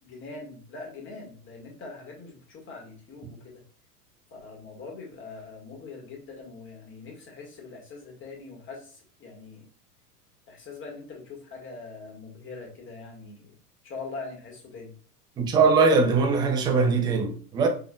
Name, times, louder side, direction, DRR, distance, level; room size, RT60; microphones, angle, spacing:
voice 1, 0.0-3.6 4.3-9.6 10.5-13.5 13.8-14.9, left 3 dB, 25° left, 1.8 m, -42 dB
voice 2, 15.4-17.7, right 4 dB, 10° right, 0.4 m, -21 dB
5.0 x 4.6 x 2.3 m
figure-of-eight pair, 85°, 48 cm